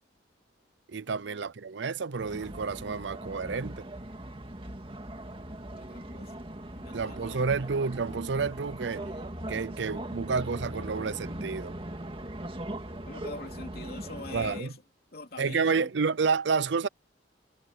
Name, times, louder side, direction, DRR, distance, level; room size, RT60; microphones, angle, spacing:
voice 1, 0.9-3.9 6.9-9.0 9.5-11.7 14.3-14.7 15.4-16.9, right 5 dB, 70° right, 0.6 m, -30 dB
sound 1, 2.2-14.6, right 1 dB, 30° right, 2.1 m, -40 dB
voice 2, 5.8-6.3 6.7-7.5 13.1-14.8 15.1-15.9, left 2 dB, 55° left, 2.9 m, -43 dB
head